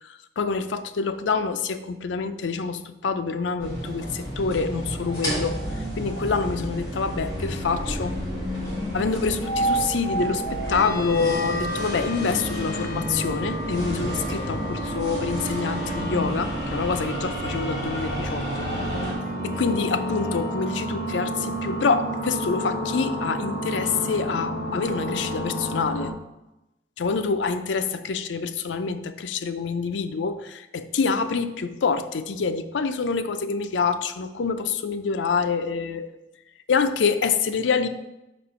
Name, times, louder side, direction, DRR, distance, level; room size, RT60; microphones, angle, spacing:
voice 1, 0.0-8.2 8.9-18.7 19.4-26.1 27.0-36.1 36.7-37.9, left 5 dB, 85° left, 10 dB, 0.5 m, -26 dB
sound 1, 3.6-19.1, right 1 dB, 20° left, 1.8 m, -31 dB
sound 2, 7.1-20.4, left 1 dB, 60° right, 1.7 m, -35 dB
sound 3, 10.7-26.1, right 1 dB, 55° left, 1.0 m, -31 dB
5.6 x 4.3 x 4.3 m, 0.93 s
head